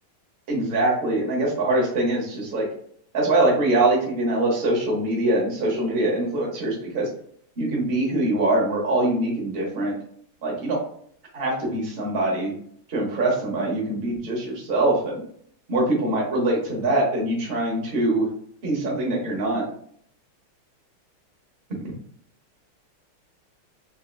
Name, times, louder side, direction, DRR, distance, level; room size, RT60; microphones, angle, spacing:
voice 1, 0.5-2.7 3.1-7.1 7.6-10.0 10.4-10.8 11.3-12.5 12.9-15.2 15.7-18.3 18.6-19.7, right 2 dB, 40° right, -3 dB, 0.9 m, -23 dB
4.1 x 2.6 x 2.5 m, 0.62 s
omnidirectional pair, 2.4 m